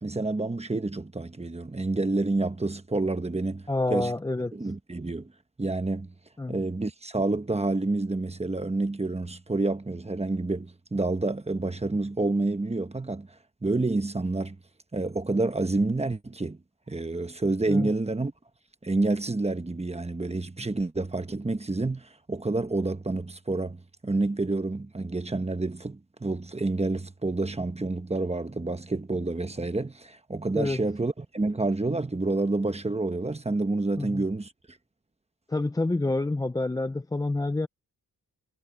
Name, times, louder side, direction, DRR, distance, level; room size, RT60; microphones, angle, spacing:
voice 1, 0.0-4.1 4.5-5.3 5.6-6.1 6.5-13.3 13.6-14.6 14.9-16.6 16.9-18.3 18.8-34.5, right 2 dB, 15° right, 1.1 m, -28 dB
voice 2, 3.7-4.6 6.4-6.6 17.7-17.9 30.5-30.8 34.0-34.2 35.5-37.7, left 2 dB, 10° left, 0.3 m, -28 dB
wide cardioid pair, 145°, 37 cm